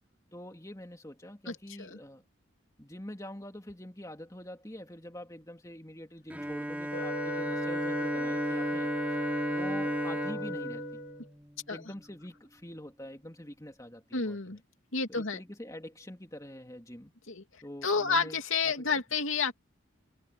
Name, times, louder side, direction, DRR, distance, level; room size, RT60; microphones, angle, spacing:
voice 1, 0.3-2.2 2.8-8.9 9.5-11.0 11.7-14.4 15.1-17.1 17.6-18.4 18.7-19.0, left 1 dB, 15° left, 2.6 m, -45 dB
voice 2, 1.5-2.0 11.7-11.8 14.1-14.6 14.9-15.4 17.3-19.5, left 5 dB, 80° left, 2.6 m, -30 dB
Bowed string instrument, 6.3-12.0, equal, 10° right, 2.4 m, -34 dB
Wind instrument woodwind instrument, 6.9-11.3, left 1 dB, 50° left, 2.2 m, -38 dB
head